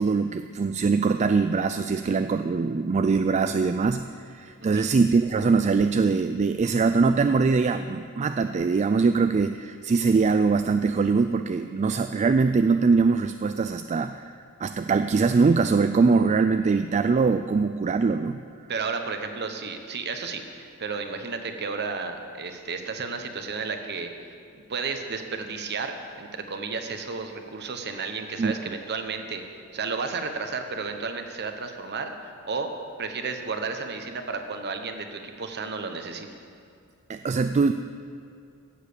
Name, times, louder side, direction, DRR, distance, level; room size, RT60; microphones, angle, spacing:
voice 1, 0.0-14.3 14.6-18.4 28.4-28.5 37.1-37.7, right 4 dB, 30° right, 9 dB, 0.3 m, -22 dB
voice 2, 18.7-24.3 24.7-29.4 29.7-32.7 33.0-36.3, right 4 dB, 50° right, 6 dB, 1.1 m, -32 dB
16.0 x 7.4 x 6.8 m, 2.4 s
head